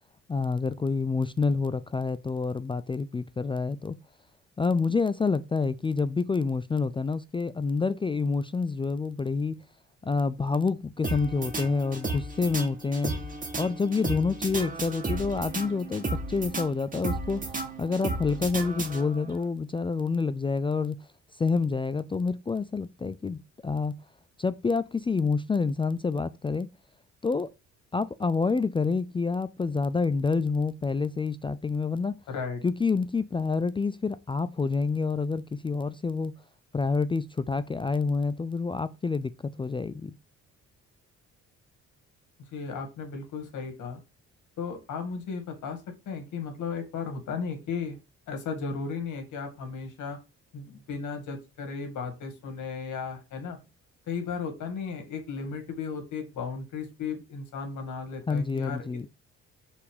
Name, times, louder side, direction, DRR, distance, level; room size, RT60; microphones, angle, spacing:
voice 1, 0.3-4.0 4.6-9.6 10.0-13.1 13.5-21.0 21.4-24.0 24.4-26.7 27.2-27.5 27.9-32.2 32.6-36.3 36.7-40.1 58.3-59.1, left 4 dB, 20° left, 0.3 m, -28 dB
sound 1, 11.0-19.4, right 2 dB, 25° right, 1.9 m, -34 dB
voice 2, 32.3-32.6 42.5-44.0 44.6-45.8 46.1-48.0 48.3-50.2 50.5-53.6 54.1-59.1, left 5 dB, 80° left, 2.3 m, -35 dB
5.6 x 4.2 x 4.9 m
cardioid pair, 90°, 30 cm